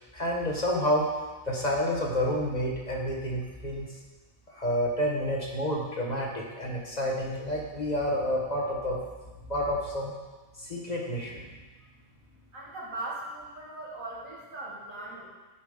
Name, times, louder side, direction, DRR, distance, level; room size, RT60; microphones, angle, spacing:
voice 1, 0.1-1.1 1.4-3.9 4.5-9.0 9.5-10.1 10.6-11.4, equal, 35° left, -2 dB, 1.2 m, -29 dB
voice 2, 12.5-15.3, right 2 dB, 85° right, -6 dB, 2.6 m, -39 dB
9.8 x 5.2 x 5.1 m, 1.2 s
omnidirectional pair, 1.4 m